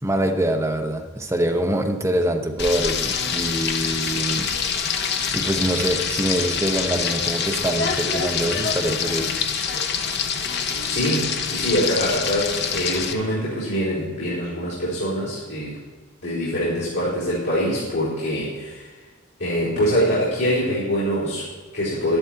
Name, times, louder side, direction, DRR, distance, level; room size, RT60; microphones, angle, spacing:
voice 1, 0.0-4.5 5.3-9.3, right 1 dB, 15° right, 3 dB, 0.9 m, -24 dB
Frying (food), 2.6-13.1, left 6 dB, 50° left, 0.8 m, -25 dB
voice 2, 10.9-15.8 16.2-18.9 19.4-22.2, equal, 85° left, -11 dB, 4.3 m, -24 dB
12.0 x 11.0 x 4.5 m, 1.4 s
head